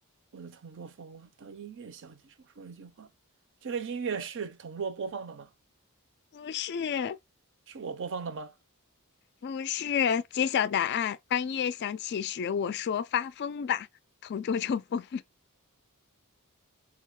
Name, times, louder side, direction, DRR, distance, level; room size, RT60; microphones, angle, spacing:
voice 1, 0.3-3.1 3.6-5.5 7.7-8.6, right 5 dB, 55° right, 0.5 m, -38 dB
voice 2, 6.3-7.2 9.4-13.9 14.2-15.2, left 8 dB, 50° left, 0.3 m, -30 dB
4.6 x 2.3 x 3.6 m
head